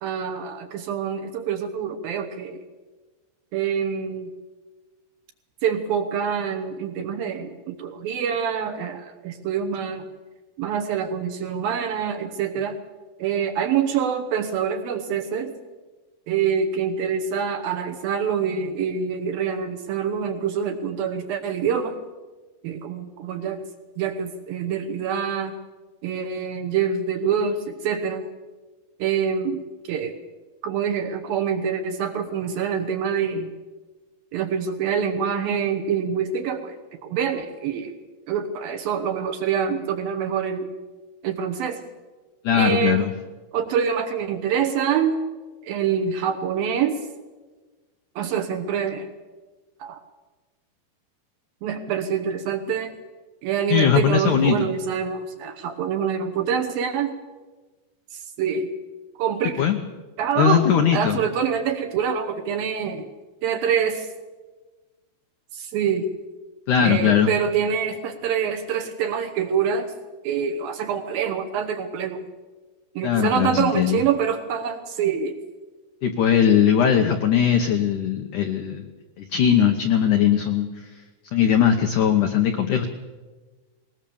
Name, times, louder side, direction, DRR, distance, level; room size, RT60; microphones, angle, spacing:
voice 1, 0.0-2.6 3.5-4.3 5.6-10.1 10.6-12.8 13.2-15.5 16.3-22.0 22.6-23.6 24.0-25.6 26.0-28.3 29.0-29.6 29.9-30.2 30.6-33.5 34.3-36.8 37.0-37.9 38.3-40.7 41.2-41.8 42.5-43.1 43.5-45.2 45.6-47.1 48.2-49.1 49.8-50.0 51.6-52.9 53.4-57.1 58.1-58.7 59.2-59.7 60.2-60.7 60.9-63.1 63.4-64.1 65.5-66.1 66.8-69.9 70.2-72.3 73.0-75.4, right 7 dB, 70° right, 5 dB, 2.4 m, -25 dB
voice 2, 42.4-43.1 53.7-54.7 59.6-59.8 60.4-61.2 66.7-67.3 73.0-74.0 76.0-78.8 79.2-80.7 81.3-82.9, left 8 dB, 90° left, 6 dB, 1.7 m, -19 dB
20.0 x 19.5 x 7.1 m, 1.3 s
omnidirectional pair, 5.2 m